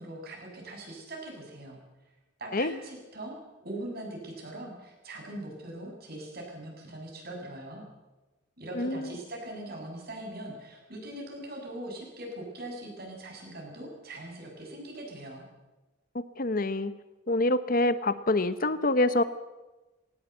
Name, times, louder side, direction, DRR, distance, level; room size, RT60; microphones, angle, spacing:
voice 1, 0.0-1.8 2.4-3.4 3.6-7.9 8.6-15.4, right 1 dB, 55° right, 1 dB, 7.2 m, -41 dB
voice 2, 8.8-9.1 16.1-16.9 17.3-19.2, left 2 dB, 45° left, 13 dB, 0.9 m, -26 dB
19.5 x 18.5 x 8.1 m, 1.1 s
head